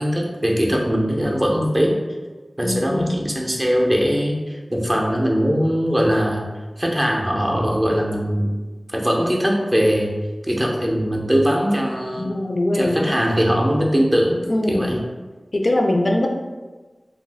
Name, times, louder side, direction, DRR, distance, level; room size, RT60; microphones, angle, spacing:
voice 1, 0.0-2.0 2.6-4.4 4.7-6.5 6.8-8.5 8.9-10.1 10.5-12.3 12.7-15.0, equal, 20° right, -1 dB, 0.5 m, -20 dB
voice 2, 2.6-3.1 12.2-13.1 14.5-14.9 15.5-16.3, left 1 dB, 60° left, 1 dB, 0.3 m, -21 dB
2.4 x 2.3 x 3.3 m, 1.3 s
wide cardioid pair, 65°, 0 cm